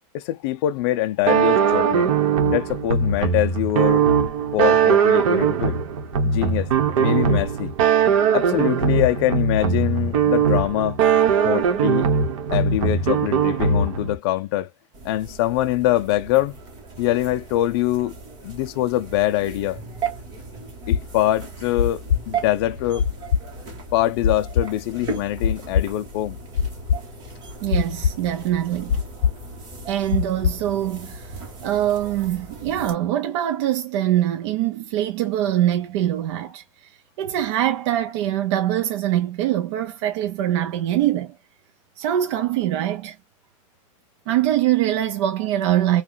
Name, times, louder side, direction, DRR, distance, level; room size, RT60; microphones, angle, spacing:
voice 1, 0.1-2.1 2.5-4.1 4.5-5.8 6.2-6.7 7.0-7.7 8.3-11.0 11.4-12.1 12.5-14.7 15.0-16.6 17.0-18.1 18.4-19.8 20.9-23.0 23.9-26.4, left 14 dB, 50° left, 0.4 m, -23 dB
sound 1, 1.3-14.2, right 6 dB, 80° right, 1.0 m, -20 dB
sound 2, 14.9-32.9, right 5 dB, 25° right, 1.0 m, -37 dB
sound 3, 20.8-29.5 29.7-31.4, left 7 dB, 80° left, 0.7 m, -24 dB
voice 2, 27.6-29.0 29.9-31.4 31.6-41.4 42.0-43.2 44.3-46.0, right 12 dB, 60° right, 0.6 m, -23 dB
2.9 x 2.3 x 3.8 m
supercardioid pair, 175°, 17 cm